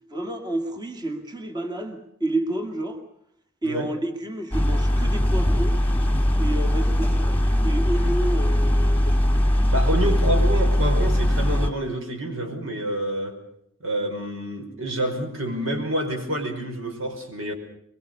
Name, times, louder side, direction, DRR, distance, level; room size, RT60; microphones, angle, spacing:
voice 1, 0.1-3.0 3.6-5.8 6.4-9.4, right 1 dB, 20° right, 5 dB, 2.2 m, -30 dB
sound 1, 4.5-11.7, equal, 10° left, 2.2 m, -20 dB
voice 2, 9.7-13.4 13.8-17.5, right 1 dB, 85° right, 4 dB, 5.3 m, -28 dB
23.5 x 23.5 x 6.7 m, 0.69 s
head